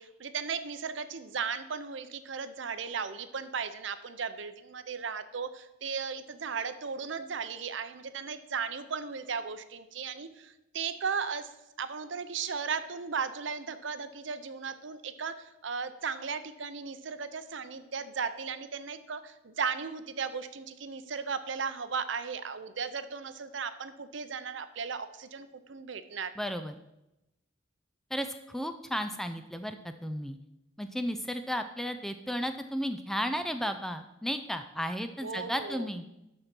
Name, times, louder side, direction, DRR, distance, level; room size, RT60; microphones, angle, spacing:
voice 1, 0.0-11.5 11.8-26.3 35.2-35.9, right 5 dB, 70° right, 12 dB, 0.6 m, -36 dB
voice 2, 26.4-26.7 28.1-30.4 30.8-36.0, equal, ahead, 8 dB, 0.4 m, -34 dB
12.0 x 4.3 x 6.0 m, 0.91 s
head